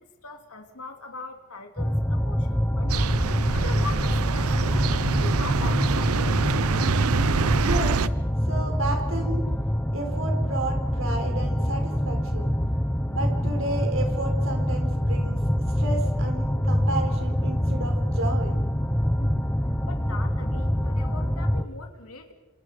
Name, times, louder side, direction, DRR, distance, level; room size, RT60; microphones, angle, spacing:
voice 1, 0.0-3.1 3.5-6.4 19.2-19.5 19.9-22.3, left 3 dB, 80° left, 5 dB, 2.8 m, -41 dB
sound 1, 1.8-21.6, equal, 10° left, 1.0 m, -25 dB
sound 2, 2.9-8.1, right 4 dB, 80° right, 0.7 m, -25 dB
voice 2, 7.6-8.0 8.5-9.5 9.9-12.5 13.1-15.5 15.8-18.6, right 2 dB, 60° right, 3 dB, 4.9 m, -32 dB
28.5 x 27.5 x 5.1 m, 1.1 s
head